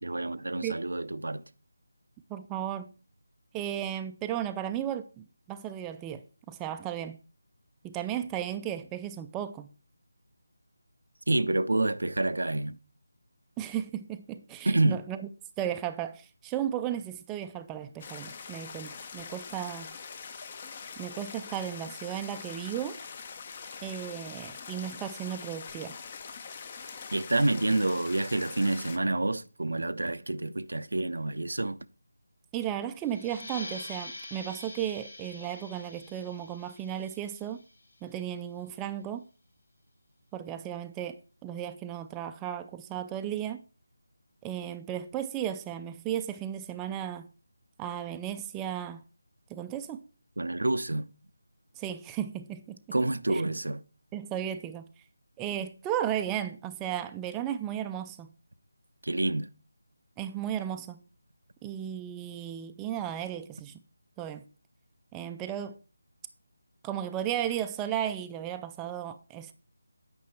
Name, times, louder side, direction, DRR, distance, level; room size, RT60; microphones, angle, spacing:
voice 1, 0.0-1.4 11.3-12.8 14.6-15.0 27.1-31.8 50.4-51.1 52.9-53.8 59.0-59.5, right 2 dB, 75° right, 0.5 m, -28 dB
voice 2, 2.3-2.9 3.5-7.2 7.8-9.7 13.6-15.2 15.6-20.0 21.0-23.0 23.8-26.0 32.5-37.6 38.0-39.2 40.3-43.6 44.4-47.3 47.8-49.0 49.5-50.0 51.8-52.8 53.3-53.4 54.1-54.9 55.4-58.3 60.2-61.0 61.6-63.8 64.2-64.4 65.1-65.8 66.8-69.5, right 10 dB, 10° right, 0.4 m, -35 dB
sound 1, 18.0-29.0, left 5 dB, 30° left, 0.6 m, -43 dB
sound 2, 33.0-38.3, left 2 dB, 70° left, 2.1 m, -45 dB
9.1 x 5.3 x 4.7 m
figure-of-eight pair, 160°, 0 cm